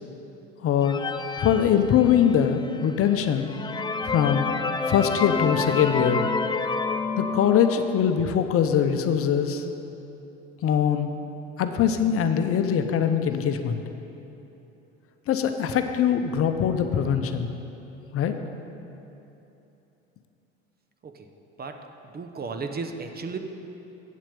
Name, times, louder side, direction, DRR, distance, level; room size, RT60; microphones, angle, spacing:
voice 1, 0.6-1.0 1.4-3.5 4.0-4.5 4.9-6.2 7.2-9.6 10.6-11.1 11.6-13.8 15.3-17.5 18.1-18.3, left 8 dB, 45° left, 7 dB, 0.8 m, -22 dB
sound 1, 0.8-2.5 3.0-3.1 3.5-8.0, left 4 dB, 15° left, 0.5 m, -29 dB
voice 2, 22.1-23.4, right 4 dB, 30° right, 6 dB, 0.9 m, -34 dB
8.5 x 7.5 x 6.9 m, 3.0 s
hypercardioid pair, 75°, 31 cm